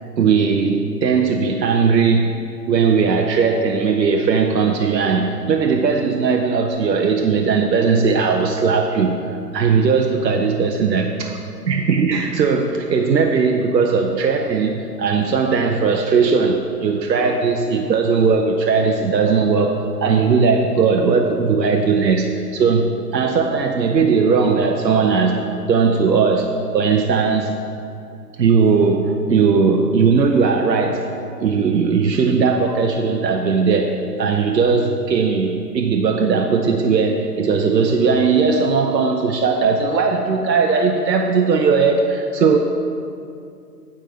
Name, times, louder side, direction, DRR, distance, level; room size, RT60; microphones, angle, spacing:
voice 1, 0.2-2.4 2.7-9.2 9.5-11.4 11.7-27.6 28.4-42.6, right 5 dB, 90° right, 3 dB, 0.9 m, -18 dB
9.0 x 5.4 x 7.8 m, 2.4 s
hypercardioid pair, 165°, 49 cm